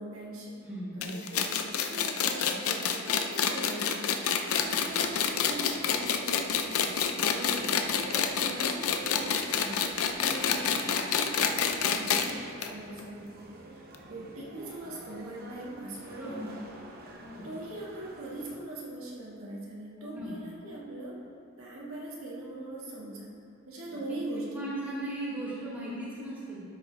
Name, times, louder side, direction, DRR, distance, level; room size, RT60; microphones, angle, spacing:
voice 1, 0.0-0.6 1.0-8.0 8.4-13.3 13.7-16.7 17.4-21.2 21.6-23.3 23.7-24.7, right 1 dB, 75° right, -5 dB, 1.8 m, -41 dB
voice 2, 0.6-1.2 2.4-2.5 14.1-14.2 16.2-16.5 17.2-17.5 20.0-20.4 24.5-26.6, right 1 dB, 10° right, -8 dB, 2.1 m, -38 dB
sound 1, 1.0-12.3 12.6-12.7 13.0-13.1 13.9-14.0, left 7 dB, 80° left, 0.6 m, -28 dB
sound 2, 4.6-18.6, right 1 dB, 45° right, 0.8 m, -47 dB
12.0 x 6.2 x 3.3 m, 2.5 s
head